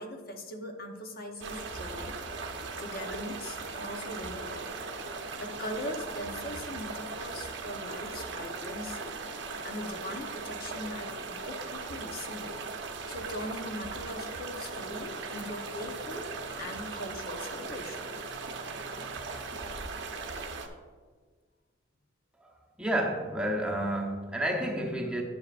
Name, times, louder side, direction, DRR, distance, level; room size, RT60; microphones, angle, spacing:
voice 1, 0.0-2.2 2.8-4.7 5.4-9.1 9.6-12.5 13.1-16.3 16.6-18.1, left 1 dB, 50° left, 3 dB, 1.0 m, -40 dB
sound 1, 1.4-20.7, right 4 dB, 65° right, 0.9 m, -38 dB
voice 2, 22.8-25.2, right 1 dB, 5° right, -1 dB, 0.9 m, -30 dB
10.5 x 8.2 x 2.5 m, 1.5 s
head